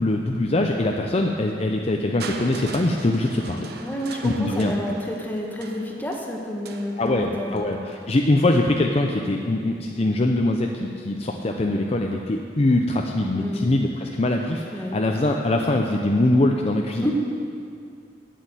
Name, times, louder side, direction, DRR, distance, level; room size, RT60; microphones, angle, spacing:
voice 1, 0.0-3.7 4.2-4.7 7.0-17.1, left 1 dB, 35° left, 2 dB, 0.6 m, -22 dB
Crushing, 2.2-8.1 9.1-9.2, right 3 dB, 60° right, 0.9 m, -40 dB
voice 2, 3.8-7.6 13.4-13.6 14.7-15.0 17.0-17.1, equal, 10° left, -1 dB, 1.3 m, -29 dB
9.4 x 8.3 x 7.9 m, 2.4 s
head